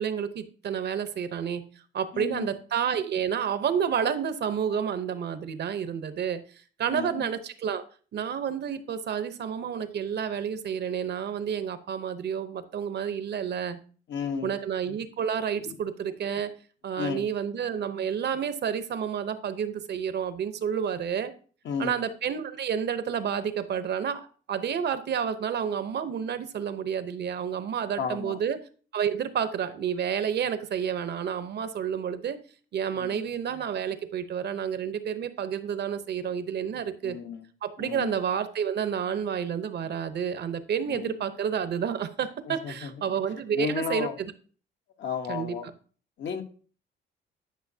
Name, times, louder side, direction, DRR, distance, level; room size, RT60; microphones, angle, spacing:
voice 1, 0.0-1.6 1.9-6.4 6.8-7.8 8.1-13.8 14.4-16.5 16.8-21.3 21.8-28.6 28.9-32.4 32.7-37.2 37.6-44.3 45.3-45.6, right 8 dB, 60° right, 11 dB, 0.9 m, -30 dB
voice 2, 2.1-2.5 6.9-7.3 14.1-14.5 17.0-17.2 21.6-22.0 28.0-28.4 32.9-33.2 37.0-37.4 37.8-38.2 40.9-41.2 42.5-42.9 43.5-44.1 45.0-45.7 46.2-46.4, left 6 dB, 65° left, 5 dB, 1.2 m, -33 dB
10.5 x 5.9 x 2.8 m, 0.41 s
cardioid pair, 90°, 20 cm